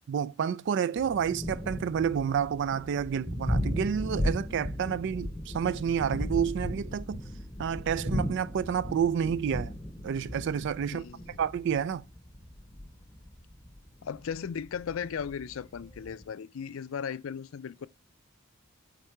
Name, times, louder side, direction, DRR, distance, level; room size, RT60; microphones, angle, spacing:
voice 1, 0.1-7.2 7.6-9.7 10.0-11.0 11.4-12.0, right 8 dB, 60° right, 0.3 m, -29 dB
Thunder, 1.0-16.2, equal, 15° left, 0.8 m, -36 dB
voice 2, 10.9-11.4 14.0-17.9, left 7 dB, 70° left, 0.4 m, -36 dB
8.0 x 3.7 x 4.4 m
head